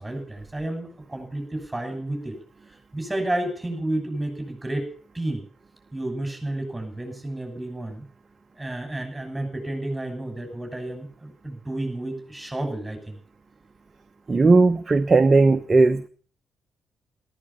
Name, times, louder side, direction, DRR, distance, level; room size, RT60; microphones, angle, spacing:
voice 1, 0.0-2.4 2.7-4.9 5.1-5.5 5.9-8.0 8.5-13.2, right 1 dB, 15° right, 5 dB, 7.1 m, -31 dB
voice 2, 14.3-16.1, right 3 dB, 35° right, 7 dB, 1.0 m, -17 dB
14.0 x 13.5 x 7.2 m, 0.43 s
hypercardioid pair, 40°, 0 cm